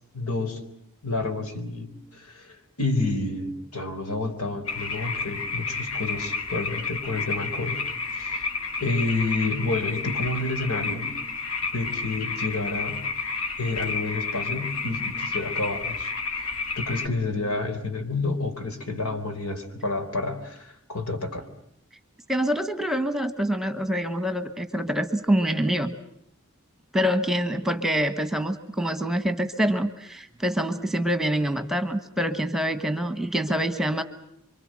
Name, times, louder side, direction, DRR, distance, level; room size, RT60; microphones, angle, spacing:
voice 1, 0.1-0.6 1.0-8.5 8.8-11.1 11.7-13.0 13.6-21.5, left 3 dB, 85° left, 7 dB, 4.2 m, -30 dB
sound 1, 4.7-17.1, left 4 dB, 70° left, 2.5 m, -31 dB
voice 2, 22.3-25.9 26.9-34.0, equal, ahead, 9 dB, 1.3 m, -26 dB
28.5 x 24.5 x 7.7 m, 0.73 s
head